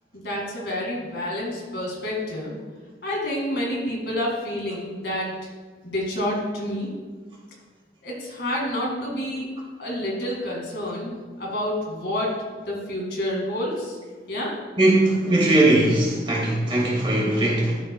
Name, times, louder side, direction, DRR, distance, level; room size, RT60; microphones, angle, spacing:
voice 1, 0.1-2.5 3.0-5.3 5.8-6.9 8.0-9.5 9.8-12.3 12.7-14.0 14.3-14.5 17.3-17.4, left 1 dB, 70° left, -2 dB, 1.9 m, -28 dB
voice 2, 14.8-17.8, right 1 dB, 30° right, -3 dB, 1.7 m, -20 dB
12.0 x 5.3 x 2.2 m, 1.4 s
head